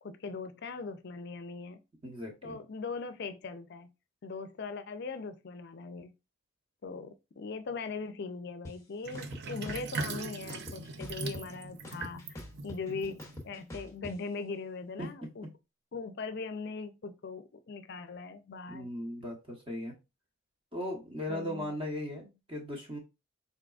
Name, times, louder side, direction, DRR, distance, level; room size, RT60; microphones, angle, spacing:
voice 1, 0.0-1.8 2.4-3.9 4.2-6.1 6.8-15.5 15.9-18.9 21.3-21.7, left 4 dB, 50° left, 0.4 m, -40 dB
voice 2, 2.0-2.6 12.9-13.0 15.0-15.1 18.7-20.0 20.7-23.0, left 1 dB, 25° right, 1.0 m, -38 dB
sound 1, 8.6-8.7 9.1-10.1 10.5-11.6 11.8-14.1, left 1 dB, 15° left, 0.7 m, -44 dB
Sink (filling or washing), 9.0-13.8, right 3 dB, 50° right, 0.4 m, -40 dB
4.0 x 3.6 x 2.4 m
head